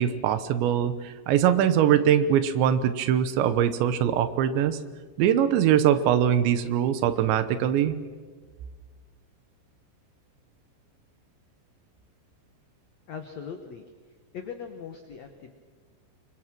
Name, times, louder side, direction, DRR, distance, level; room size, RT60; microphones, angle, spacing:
voice 1, 0.0-4.8 5.2-8.0, right 9 dB, 80° right, 12 dB, 3.3 m, -22 dB
voice 2, 13.1-13.9 14.3-15.5, left 7 dB, 85° left, 6 dB, 1.5 m, -39 dB
27.5 x 23.5 x 6.1 m, 1.5 s
omnidirectional pair, 5.3 m